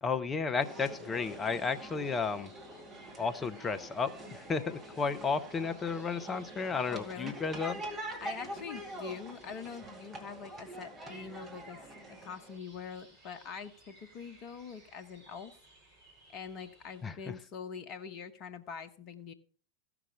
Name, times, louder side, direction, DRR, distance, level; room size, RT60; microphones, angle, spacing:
voice 1, 0.0-2.5 3.2-7.8 17.0-17.3, left 5 dB, 20° left, 11 dB, 0.8 m, -33 dB
sound 1, 0.6-12.6, right 1 dB, 20° right, 2.5 m, -45 dB
sound 2, 1.1-17.1, right 2 dB, 40° right, 6.1 m, -60 dB
voice 2, 6.9-7.4 8.2-15.6 16.3-19.3, left 6 dB, 35° left, 9 dB, 1.2 m, -44 dB
15.5 x 6.0 x 4.8 m, 0.42 s
figure-of-eight pair, 90°, 0 cm